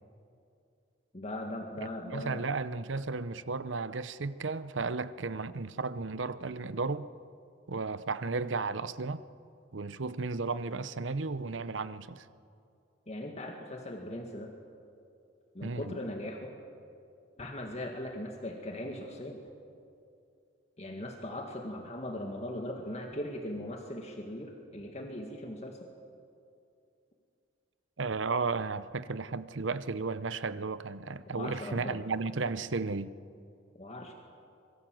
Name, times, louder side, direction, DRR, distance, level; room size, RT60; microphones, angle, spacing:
voice 1, 1.1-2.4 13.1-14.5 15.5-16.5 17.4-19.4 20.8-25.9 31.3-32.0 33.8-34.1, left 1 dB, 35° left, 2.0 m, -39 dB
voice 2, 2.1-7.1 7.7-9.2 9.7-12.2 15.6-15.9 28.0-33.1, right 4 dB, 85° right, 0.8 m, -34 dB
25.0 x 23.0 x 7.8 m
head